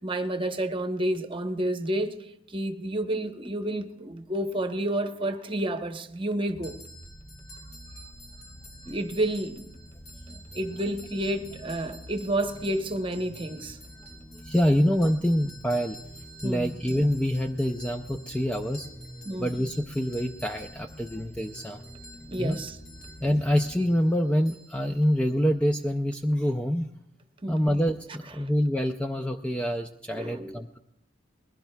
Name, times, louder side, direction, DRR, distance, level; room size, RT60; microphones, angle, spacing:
voice 1, 0.0-2.2 2.5-6.8 8.9-9.7 10.3-13.8 16.4-16.7 19.2-19.5 22.3-22.8 27.4-27.7 28.4-28.5 30.1-30.5, right 1 dB, 25° right, 0.9 m, -30 dB
sound 1, 6.5-24.0, equal, 30° left, 6.2 m, -47 dB
sound 2, 6.6-25.4, equal, 90° left, 3.1 m, -50 dB
voice 2, 14.4-16.0 16.4-18.9 19.4-21.8 22.4-22.6 23.2-26.9 27.5-30.8, equal, 5° left, 0.4 m, -26 dB
21.0 x 16.5 x 2.2 m
head